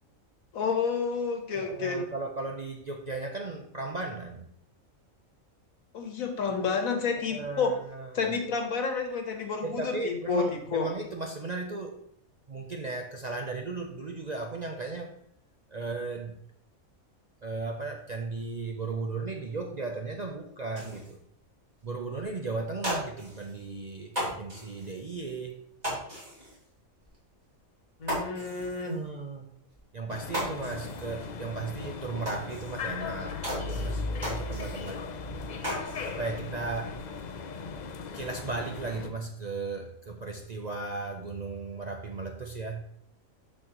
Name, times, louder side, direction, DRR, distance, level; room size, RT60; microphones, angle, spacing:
voice 1, 0.5-2.0 5.9-7.7 8.1-10.9 28.0-29.0, left 5 dB, 85° left, 4 dB, 1.6 m, -30 dB
voice 2, 1.5-4.5 7.3-8.4 9.6-12.0 12.5-15.2 15.7-16.4 17.4-21.2 21.8-25.6 28.9-29.5 29.9-35.1 36.0-37.0 38.1-42.8, right 3 dB, 50° right, 3 dB, 0.5 m, -36 dB
sound 1, 20.8-21.1 21.8-21.9 22.2-22.3 22.6-23.6 24.1-25.0 25.8-26.6 27.0-27.2 27.5-27.6 28.0-29.0 29.7-29.8 30.1-31.2 31.5-31.6 32.2-33.0 33.4-35.0 35.3-36.2 36.5-37.1, equal, 30° right, 2.3 m, -36 dB
sound 2, 30.1-39.1, left 4 dB, 55° left, 0.5 m, -37 dB
12.5 x 4.2 x 2.9 m, 0.69 s
omnidirectional pair, 1.4 m